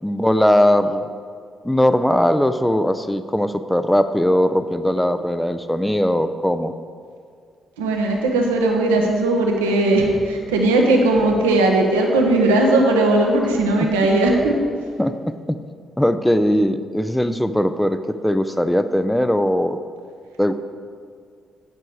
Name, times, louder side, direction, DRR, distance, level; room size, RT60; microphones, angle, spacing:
voice 1, 0.0-1.1 1.6-6.7 15.0-15.6 16.0-18.0 18.2-19.8 20.4-20.5, left 1 dB, 5° left, 10 dB, 0.5 m, -19 dB
voice 2, 7.8-14.6, right 2 dB, 85° right, 1 dB, 1.0 m, -18 dB
8.7 x 7.7 x 4.7 m, 2.2 s
hypercardioid pair, 45°, 0 cm